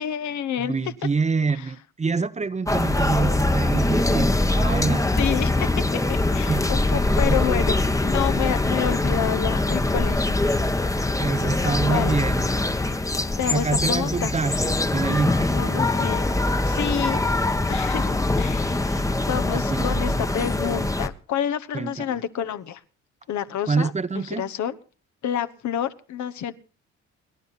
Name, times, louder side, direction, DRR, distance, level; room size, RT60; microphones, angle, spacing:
voice 1, 0.0-0.7 5.2-10.3 11.7-12.1 13.4-14.3 15.5-16.3 16.6-17.2 17.7-18.9 19.3-22.8 23.3-24.8 25.2-26.5, left 9 dB, 70° left, 1.1 m, -29 dB
voice 2, 0.6-5.1 6.5-7.4 11.2-12.5 13.5-15.6 17.1-17.3 18.9-19.0 19.5-20.0 21.7-22.2 23.7-24.4, right 4 dB, 25° right, 0.8 m, -26 dB
sound 1, 2.7-21.1, left 2 dB, 10° left, 0.9 m, -23 dB
29.5 x 10.5 x 4.1 m
cardioid pair, 90°, 30 cm